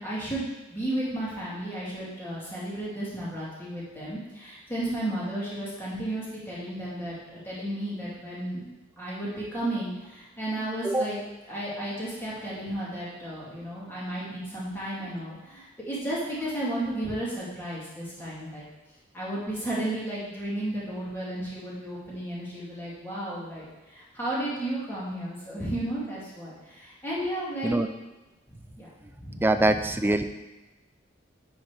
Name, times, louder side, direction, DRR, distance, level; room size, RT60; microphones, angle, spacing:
voice 1, 0.0-8.7 9.0-11.2 11.5-18.6 19.1-27.9 28.5-28.9 29.2-29.7, right 1 dB, 10° left, -8 dB, 2.6 m, -33 dB
voice 2, 29.4-30.2, right 2 dB, 10° right, 8 dB, 0.3 m, -23 dB
9.7 x 4.1 x 4.9 m, 1.1 s
head